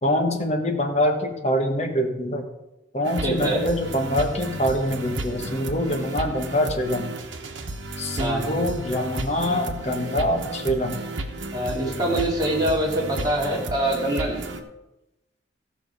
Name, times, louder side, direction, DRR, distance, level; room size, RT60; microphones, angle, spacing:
voice 1, 0.0-2.4 2.9-7.1 8.0-11.0, equal, 35° left, 3 dB, 1.4 m, -24 dB
sound 1, 3.0-14.6, right 2 dB, 75° right, 1.1 m, -33 dB
voice 2, 3.2-3.6 8.2-8.4 11.5-14.6, right 1 dB, 20° right, -4 dB, 2.7 m, -24 dB
15.0 x 6.1 x 4.8 m, 0.94 s
head